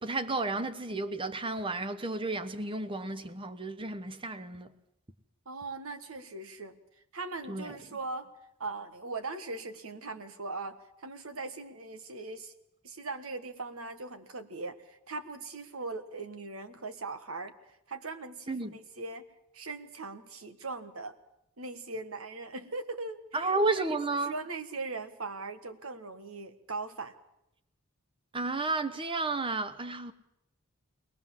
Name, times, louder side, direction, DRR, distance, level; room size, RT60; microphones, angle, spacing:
voice 1, 0.0-4.7 7.5-7.6 18.5-18.7 23.3-24.3 28.3-30.1, right 3 dB, 25° right, 1.0 m, -32 dB
voice 2, 5.4-6.8 7.1-8.3 8.6-12.5 12.8-17.5 17.9-19.3 19.5-21.2 21.6-27.1, right 3 dB, 80° right, 1.6 m, -40 dB
22.5 x 19.0 x 7.4 m
head